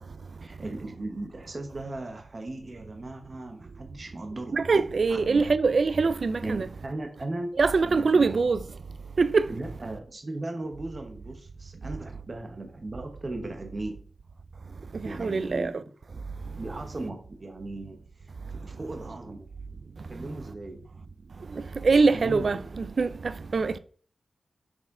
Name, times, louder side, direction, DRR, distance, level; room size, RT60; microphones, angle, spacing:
voice 1, 0.4-5.5 6.4-7.5 7.9-8.6 9.5-14.1 15.0-15.8 16.6-19.5 20.1-20.9 22.1-22.6, right 2 dB, 30° right, 0.9 m, -37 dB
voice 2, 4.5-6.7 7.6-8.6 9.2-9.5 15.2-15.7 21.8-23.8, right 4 dB, 50° right, 0.4 m, -23 dB
6.2 x 4.2 x 3.7 m
wide cardioid pair, 155°, 0 cm